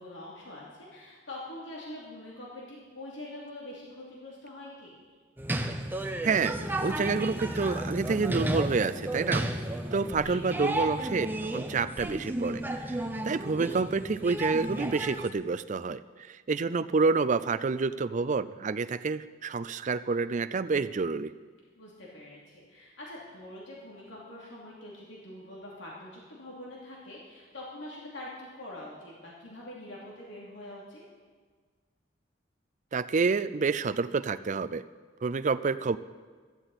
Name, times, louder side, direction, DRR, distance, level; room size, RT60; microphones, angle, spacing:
voice 1, 0.0-5.0 10.2-10.7 21.8-31.0, left 1 dB, 70° left, -5 dB, 2.9 m, -44 dB
sound 1, 5.4-15.3, right 1 dB, 10° right, 0.9 m, -33 dB
voice 2, 6.2-9.5 9.9-13.0 13.2-16.0 16.3-21.3 32.9-34.8 35.2-36.0, right 4 dB, 40° right, 13 dB, 0.4 m, -28 dB
16.0 x 13.0 x 4.2 m, 1.5 s
head